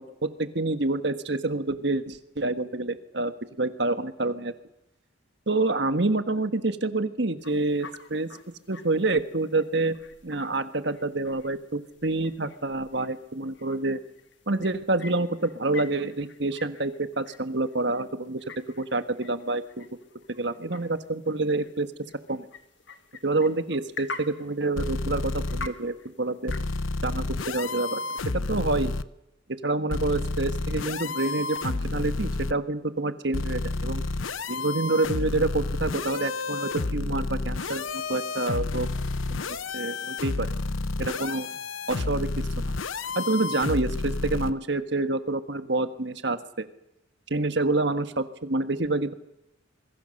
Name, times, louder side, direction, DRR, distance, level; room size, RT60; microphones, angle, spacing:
voice 1, 0.2-3.3 3.6-4.5 5.5-8.3 8.7-10.0 10.2-14.0 14.5-18.4 18.7-19.9 20.4-21.9 22.3-22.4 23.2-26.5 27.0-28.0 28.3-28.9 29.6-34.0 34.5-38.9 39.3-40.5 41.0-41.5 41.9-42.7 43.1-46.7 47.3-49.1, right 2 dB, 60° right, 10 dB, 1.5 m, -27 dB
sound 1, 7.4-26.6, left 3 dB, 65° left, 1.7 m, -47 dB
sound 2, 24.8-25.7 26.5-29.0 29.9-32.5 33.3-44.5, left 3 dB, 85° left, 0.8 m, -30 dB
26.5 x 22.0 x 6.6 m, 0.88 s
head